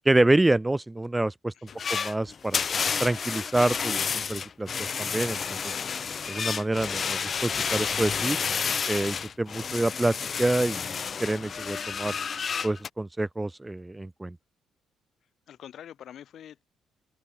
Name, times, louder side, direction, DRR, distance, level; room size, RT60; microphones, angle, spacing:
voice 1, 0.0-1.5 1.9-2.6 3.0-5.7 6.3-8.4 8.9-10.9 11.2-12.1 12.6-14.3, right 2 dB, 15° right, 1.4 m, -27 dB
sound 1, 1.7-12.9, left 6 dB, 45° left, 1.1 m, -30 dB
voice 2, 15.5-16.6, left 10 dB, 70° left, 6.6 m, -45 dB
open air
cardioid pair, 90°, 0 cm